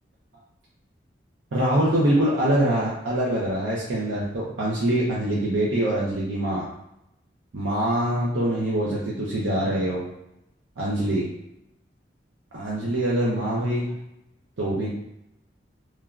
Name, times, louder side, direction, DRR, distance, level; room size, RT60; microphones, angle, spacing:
voice 1, 1.5-6.6 7.5-10.1 10.8-11.3 12.5-13.9 14.6-14.9, right 1 dB, 85° right, -6 dB, 0.6 m, -24 dB
3.2 x 2.3 x 2.3 m, 0.83 s
head